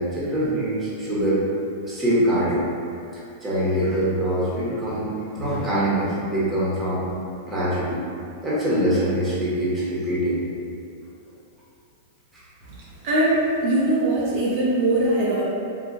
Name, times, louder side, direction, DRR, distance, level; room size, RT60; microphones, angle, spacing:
voice 1, 0.0-1.4 1.8-2.6 3.1-7.1 7.5-8.0 8.4-10.4 12.3-12.4, right 1 dB, 15° right, -8 dB, 1.0 m, -24 dB
voice 2, 13.0-15.4, right 1 dB, 55° right, -7 dB, 0.6 m, -21 dB
3.7 x 2.4 x 2.4 m, 2.5 s
hypercardioid pair, 125°, 0 cm